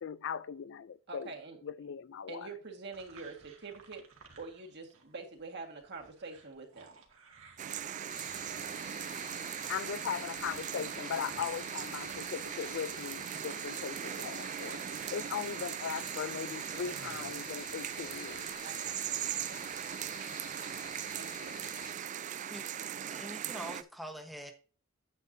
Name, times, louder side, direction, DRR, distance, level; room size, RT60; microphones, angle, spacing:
voice 1, 0.0-1.3 1.6-2.5 9.7-14.8 15.1-18.5, left 7 dB, 65° left, 0.4 m, -39 dB
voice 2, 1.1-1.6 2.3-4.1 4.4-7.0 18.6-19.7 20.3-20.6 21.1-21.6, right 4 dB, 55° right, 1.7 m, -46 dB
sound 1, 2.9-5.1 5.4-16.0 16.5-18.5, right 4 dB, 70° right, 1.9 m, -58 dB
sound 2, 7.6-23.8, right 9 dB, 35° right, 0.3 m, -39 dB
sound 3, 8.1-21.9, left 8 dB, 85° left, 1.1 m, -50 dB
voice 3, 23.1-24.5, equal, ahead, 1.1 m, -44 dB
9.4 x 8.3 x 2.7 m
head